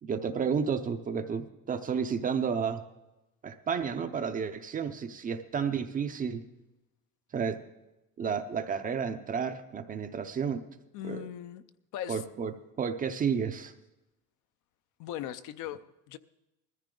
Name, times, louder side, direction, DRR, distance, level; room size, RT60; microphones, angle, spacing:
voice 1, 0.0-2.8 3.4-6.4 7.3-7.6 8.2-10.6 11.0-11.2 12.1-12.5 12.8-13.7, right 6 dB, 20° right, 0.6 m, -31 dB
voice 2, 10.9-11.6 11.9-12.2 15.0-16.2, left 11 dB, 50° left, 0.6 m, -39 dB
20.0 x 14.0 x 3.8 m
cardioid pair, 165°, 39 cm